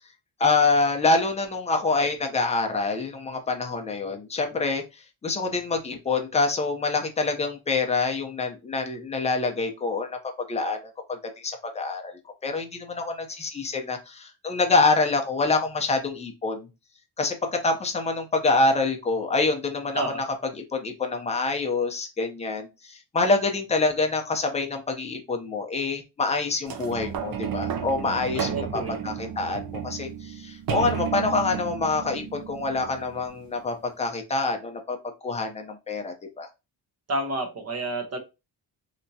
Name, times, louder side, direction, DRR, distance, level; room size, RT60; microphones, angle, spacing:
voice 1, 0.4-4.8 5.2-10.2 10.5-10.8 11.1-11.2 11.4-12.1 12.4-16.7 17.2-17.3 17.6-20.0 20.5-35.0 35.2-36.5, left 3 dB, 15° left, 4 dB, 0.6 m, -26 dB
sound 1, 26.7-33.4 34.1-34.2, right 7 dB, 60° right, 0.6 m, -33 dB
voice 2, 28.5-29.0 37.1-38.2, right 2 dB, 40° right, 4 dB, 1.0 m, -29 dB
3.4 x 2.9 x 2.7 m, 0.26 s
wide cardioid pair, 165°, 40 cm